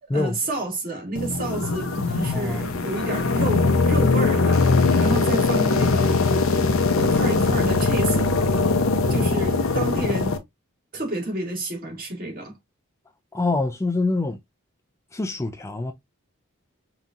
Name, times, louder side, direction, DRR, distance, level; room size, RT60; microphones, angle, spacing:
voice 1, 0.0-4.6 5.0-6.2 7.0-8.4 9.1-10.3 10.9-12.5, right 2 dB, 45° right, 2.1 m, -30 dB
sound 1, 1.2-10.4, left 3 dB, 70° left, 0.7 m, -21 dB
sound 2, 1.2-5.2, equal, 40° left, 0.9 m, -37 dB
voice 2, 2.3-2.6 13.3-14.4 15.1-15.9, left 2 dB, 15° left, 0.4 m, -25 dB
5.4 x 2.8 x 2.4 m
head